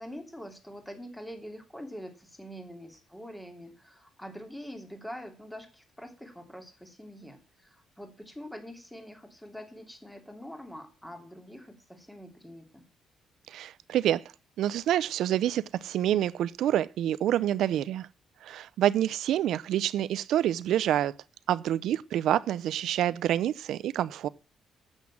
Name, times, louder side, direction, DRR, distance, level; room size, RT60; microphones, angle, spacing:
voice 1, 0.0-12.8, equal, 5° left, 2.9 m, -44 dB
voice 2, 13.5-14.2 14.6-18.1 18.4-21.1 21.5-24.3, right 11 dB, 80° right, 0.5 m, -27 dB
9.6 x 8.2 x 7.2 m
cardioid pair, 90°, 0 cm